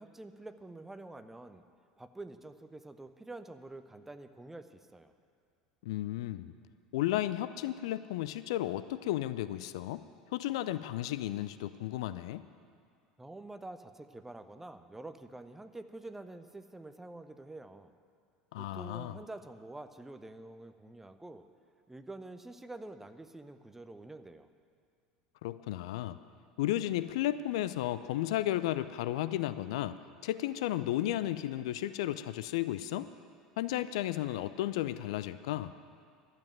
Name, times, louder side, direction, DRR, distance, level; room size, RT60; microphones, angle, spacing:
voice 1, 0.0-1.6 2.0-5.1 13.2-17.9 18.6-21.5 21.9-24.5, right 2 dB, 10° right, 10 dB, 0.7 m, -47 dB
voice 2, 5.8-6.5 6.9-10.0 10.3-12.4 18.5-19.2 25.4-26.2 26.6-29.9 30.2-33.1 33.6-35.7, left 14 dB, 65° left, 14 dB, 0.4 m, -33 dB
12.0 x 7.9 x 9.1 m, 2.2 s
figure-of-eight pair, 75°, 3 cm